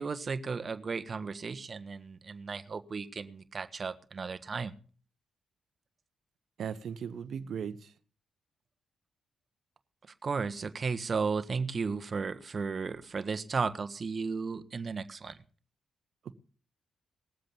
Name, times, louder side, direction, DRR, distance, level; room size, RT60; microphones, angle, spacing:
voice 1, 0.0-4.7 10.2-15.3, right 5 dB, 45° right, 1.4 m, -34 dB
voice 2, 6.6-7.9, right 7 dB, 70° right, 1.2 m, -37 dB
20.0 x 7.7 x 7.1 m
supercardioid pair, 50°, 0 cm